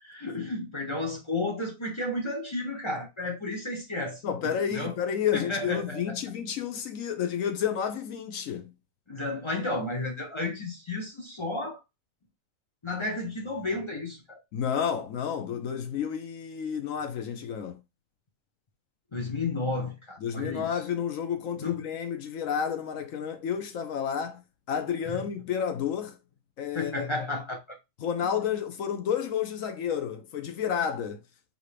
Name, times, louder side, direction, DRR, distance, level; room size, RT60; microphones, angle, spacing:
voice 1, 0.0-4.9 5.3-6.2 9.1-11.8 12.8-14.4 19.1-20.7 21.6-21.8 25.1-25.2 26.7-27.6, left 2 dB, 35° left, 0.5 m, -32 dB
voice 2, 4.2-8.7 14.5-17.8 20.2-24.4 24.7-26.2 26.6-27.2 28.0-31.2, left 8 dB, 60° left, 1.0 m, -30 dB
5.0 x 2.8 x 3.2 m
omnidirectional pair, 1.7 m